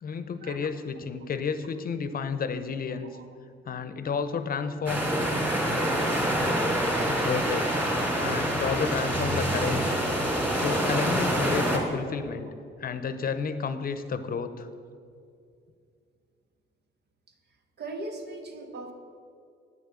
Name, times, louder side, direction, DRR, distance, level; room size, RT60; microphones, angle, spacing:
voice 1, 0.0-3.1 3.7-5.1 7.0-7.8 8.2-10.0 10.5-12.5 12.8-14.7, left 5 dB, 50° left, 11 dB, 0.7 m, -31 dB
sound 1, 4.9-11.8, equal, 10° right, 2.8 m, -26 dB
voice 2, 17.8-18.9, right 2 dB, 55° right, 5 dB, 1.4 m, -39 dB
9.2 x 6.7 x 7.6 m, 2.4 s
cardioid pair, 90°, 20 cm